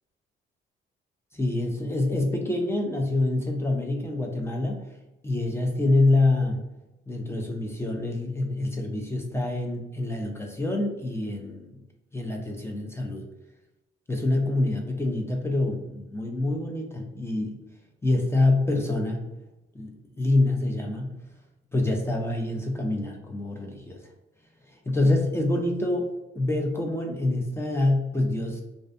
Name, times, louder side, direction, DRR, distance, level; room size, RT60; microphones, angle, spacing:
voice 1, 1.3-4.8 5.2-6.6 7.1-11.7 12.1-13.3 14.1-17.6 18.0-19.2 19.7-21.2 21.7-24.0 24.9-28.6, left 2 dB, 15° left, 1 dB, 0.4 m, -26 dB
2.5 x 2.4 x 2.3 m, 0.95 s
cardioid pair, 90°, 20 cm